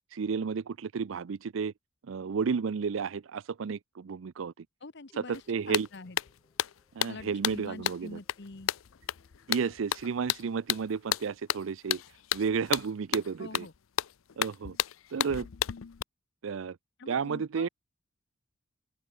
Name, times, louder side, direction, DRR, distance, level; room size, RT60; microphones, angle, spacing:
voice 1, 0.1-1.7 2.1-4.5 5.2-5.9 7.0-8.2 9.5-12.0 12.3-13.7 14.4-14.8 15.1-15.5 16.4-16.8 17.1-17.7, right 5 dB, 75° right, 0.5 m, -32 dB
voice 2, 4.8-6.2 7.1-8.7 13.4-13.7 17.0-17.7, left 3 dB, 60° left, 1.2 m, -45 dB
sound 1, 4.9-11.6, equal, 10° left, 6.5 m, -71 dB
sound 2, 5.3-5.4 5.7-16.0, left 11 dB, 85° left, 0.5 m, -33 dB
open air
head